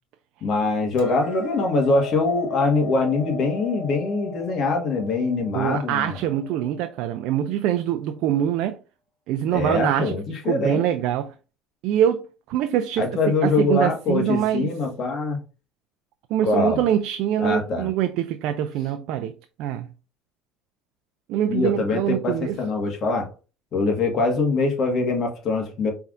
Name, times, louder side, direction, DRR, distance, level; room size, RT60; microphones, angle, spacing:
voice 1, 0.4-6.2 9.5-10.8 13.0-15.4 16.4-16.8 17.4-17.9 21.5-23.3 23.7-25.9, left 3 dB, 50° left, 1.6 m, -23 dB
Hammer, 1.0-7.2, left 3 dB, 80° left, 1.8 m, -37 dB
voice 2, 5.5-8.8 9.3-10.2 10.5-11.3 11.8-14.7 16.3-19.3 19.6-19.9 21.3-22.6, right 10 dB, 70° right, 0.4 m, -24 dB
5.4 x 3.5 x 2.5 m
supercardioid pair, 95°, 0 cm